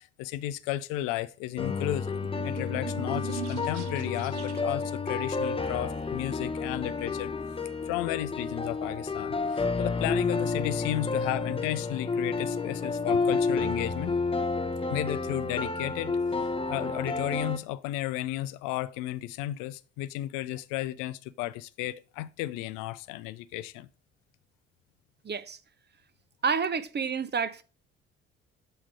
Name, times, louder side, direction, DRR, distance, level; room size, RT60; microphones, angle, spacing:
voice 1, 0.0-2.2 2.4-7.3 7.9-14.2 14.9-23.9, left 15 dB, 75° left, 0.5 m, -33 dB
sound 1, 1.6-17.6, left 4 dB, 15° left, 0.8 m, -30 dB
sound 2, 1.9-4.9, right 12 dB, 80° right, 0.9 m, -40 dB
voice 2, 25.2-25.6 26.4-27.6, right 6 dB, 30° right, 0.7 m, -29 dB
7.8 x 3.7 x 4.6 m
hypercardioid pair, 50°, 33 cm